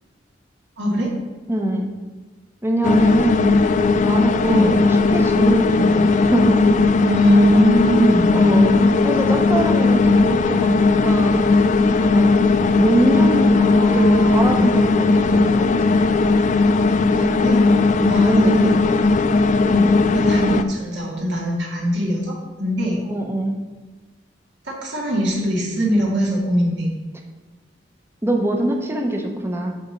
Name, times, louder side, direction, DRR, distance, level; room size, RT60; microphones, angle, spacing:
voice 1, 0.8-1.1 4.5-4.8 7.0-8.4 13.5-14.7 17.2-17.6 18.1-19.0 20.1-22.3 22.6-23.0 24.7-26.9, equal, 70° right, -3 dB, 1.7 m, -21 dB
voice 2, 1.5-1.9 2.6-3.5 4.0-6.6 8.3-11.4 12.0-12.3 12.7-16.0 17.9-19.0 19.7-20.0 23.1-23.6 28.2-29.7, right 1 dB, 15° right, 2 dB, 0.8 m, -23 dB
sound 1, 2.8-20.6, left 3 dB, 40° left, 0.3 m, -17 dB
6.8 x 4.3 x 6.3 m, 1.3 s
head